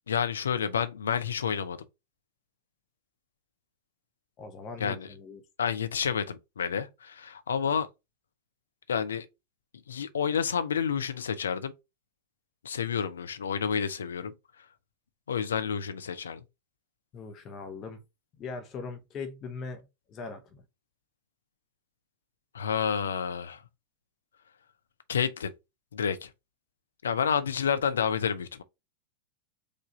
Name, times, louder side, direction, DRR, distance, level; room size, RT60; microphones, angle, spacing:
voice 1, 0.1-1.8 4.8-5.1 5.6-7.9 8.9-9.3 9.9-11.7 12.6-14.3 15.3-16.4 22.5-23.6 25.1-25.5 25.9-26.3 27.0-28.6, left 7 dB, 70° left, 0.6 m, -29 dB
voice 2, 4.4-5.4 17.1-18.0 18.4-20.6, left 4 dB, 30° left, 1.1 m, -40 dB
5.0 x 2.6 x 3.6 m
figure-of-eight pair, 90°, 0 cm